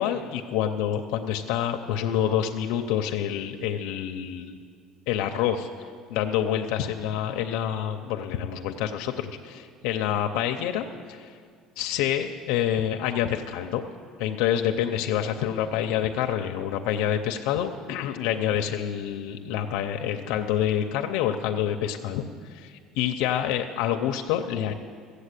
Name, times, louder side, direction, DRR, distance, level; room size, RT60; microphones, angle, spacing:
voice 1, 0.0-4.5 5.1-5.7 6.1-11.3 11.8-13.8 14.2-22.2 22.5-24.7, left 10 dB, 75° left, 4 dB, 0.6 m, -27 dB
14.5 x 8.2 x 8.2 m, 2.1 s
cardioid pair, 180°, 0 cm